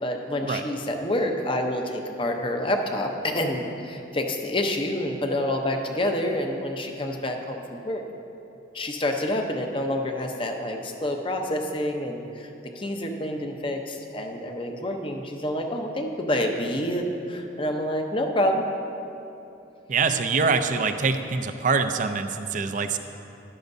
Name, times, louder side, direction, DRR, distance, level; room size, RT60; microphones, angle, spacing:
voice 1, 0.0-8.0 8.7-18.6, left 1 dB, 30° left, 3 dB, 0.7 m, -28 dB
voice 2, 19.9-23.0, right 4 dB, 40° right, 8 dB, 0.5 m, -24 dB
13.5 x 11.5 x 2.7 m, 2.8 s
head